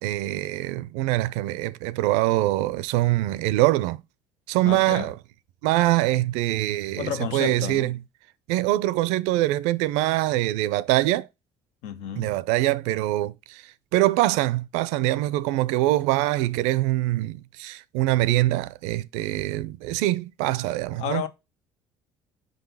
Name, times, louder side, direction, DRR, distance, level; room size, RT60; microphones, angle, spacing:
voice 1, 0.0-4.0 4.5-5.1 5.6-7.9 8.5-11.3 12.2-21.3, right 16 dB, 85° right, 0.4 m, -24 dB
voice 2, 4.6-5.1 7.0-7.9 11.8-12.3 21.0-21.3, left 9 dB, 80° left, 0.9 m, -31 dB
5.1 x 4.0 x 5.4 m
supercardioid pair, 80°, 11 cm